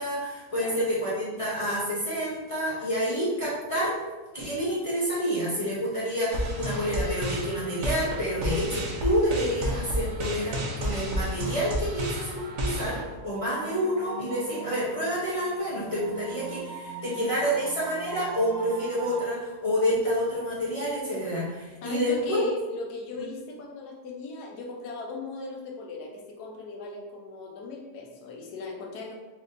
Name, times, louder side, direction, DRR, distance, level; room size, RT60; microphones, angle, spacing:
voice 1, 0.0-3.9 4.3-22.4, equal, 45° left, -8 dB, 0.4 m, -28 dB
sound 1, 6.3-13.0, equal, 60° right, 0.8 m, -31 dB
sound 2, 12.4-19.2, right 3 dB, 85° right, 1.4 m, -41 dB
voice 2, 21.8-29.1, left 3 dB, 85° left, 0 dB, 1.2 m, -38 dB
4.3 x 2.5 x 2.5 m, 1.2 s
omnidirectional pair, 1.6 m